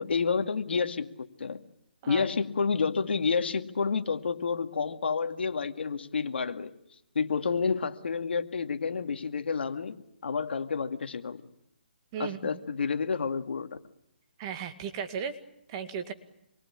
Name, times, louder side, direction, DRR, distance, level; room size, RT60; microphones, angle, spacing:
voice 1, 0.0-1.6 2.1-6.7 7.1-11.4 12.2-13.7, left 5 dB, 70° left, 7 dB, 2.2 m, -29 dB
voice 2, 12.1-12.6 14.4-15.4 15.7-16.1, right 7 dB, 25° right, 7 dB, 2.1 m, -36 dB
27.0 x 23.0 x 8.7 m, 0.78 s
hypercardioid pair, 165°, 6 cm